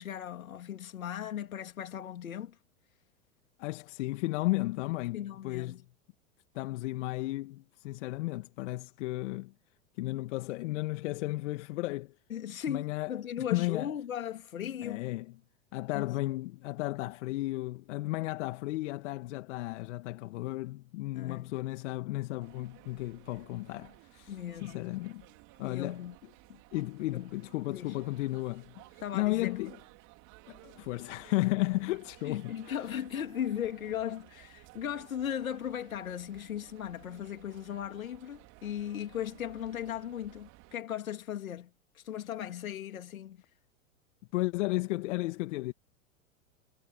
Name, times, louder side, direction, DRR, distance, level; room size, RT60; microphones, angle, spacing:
voice 1, 0.0-2.6 5.1-5.8 12.3-15.1 15.9-16.2 21.1-21.6 24.3-25.0 25.6-26.1 26.5-26.6 27.1-27.3 27.7-28.0 29.0-29.6 32.2-43.4, left 10 dB, 80° left, 2.9 m, -37 dB
voice 2, 3.6-5.7 6.5-9.5 10.0-12.1 12.7-13.1 13.5-13.9 14.8-15.3 15.7-24.4 24.6-25.2 25.6-26.0 26.7-28.7 29.1-29.7 30.5-32.7 44.3-45.7, left 19 dB, 60° left, 1.9 m, -34 dB
sound 1, 22.4-40.8, right 22 dB, 45° right, 3.2 m, -56 dB
hypercardioid pair, 100°, 41 cm